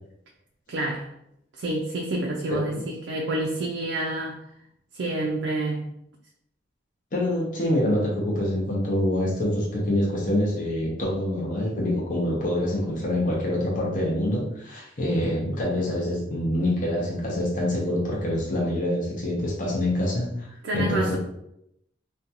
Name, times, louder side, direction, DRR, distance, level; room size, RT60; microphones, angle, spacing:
voice 1, 0.7-1.1 1.6-4.4 4.9-5.9 20.6-21.2, right 2 dB, 75° right, 0 dB, 0.4 m, -28 dB
voice 2, 2.5-2.8 7.1-21.2, left 1 dB, 45° left, -3 dB, 0.6 m, -26 dB
2.5 x 2.2 x 2.7 m, 0.77 s
head